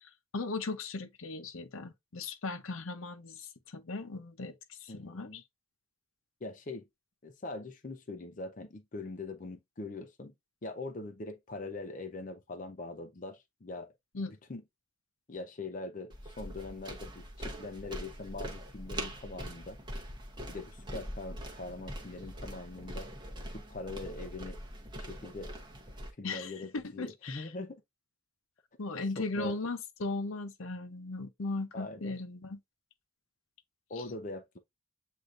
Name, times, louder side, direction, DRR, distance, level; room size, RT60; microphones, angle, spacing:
voice 1, 0.0-4.5 4.8-5.4 14.1-14.3 26.2-27.5 28.8-32.6, left 3 dB, 75° left, 0.7 m, -37 dB
voice 2, 4.9-5.4 6.4-6.8 7.2-10.3 10.6-13.9 14.5-14.6 15.3-19.8 20.5-23.1 23.4-24.6 24.9-25.5 26.2-27.8 29.2-29.5 31.7-32.1 33.9-34.6, left 2 dB, 40° left, 0.5 m, -42 dB
sound 1, 16.1-26.1, equal, 20° right, 0.9 m, -43 dB
7.9 x 2.7 x 2.4 m
head